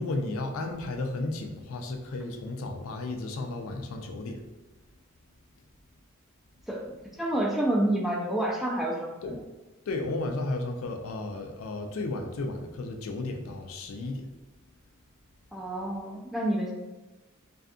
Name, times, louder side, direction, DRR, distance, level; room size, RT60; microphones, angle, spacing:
voice 1, 0.0-4.4 9.2-9.4 9.9-14.3, left 2 dB, 70° left, 4 dB, 0.4 m, -33 dB
voice 2, 7.2-9.4 15.5-16.7, right 1 dB, ahead, -2 dB, 0.3 m, -28 dB
2.6 x 2.4 x 2.3 m, 1.1 s
head